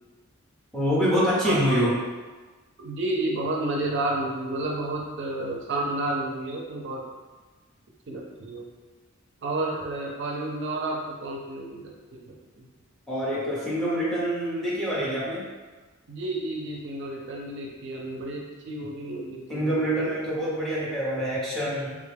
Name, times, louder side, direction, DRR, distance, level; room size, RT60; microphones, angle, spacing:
voice 1, 0.7-1.9 13.1-15.4 19.5-22.0, equal, ahead, -8 dB, 0.9 m, -26 dB
voice 2, 1.4-1.9 2.8-7.0 8.1-8.6 9.4-11.9 12.3-12.7 16.1-20.1, right 2 dB, 60° right, -2 dB, 0.4 m, -31 dB
3.4 x 2.2 x 3.3 m, 1.3 s
head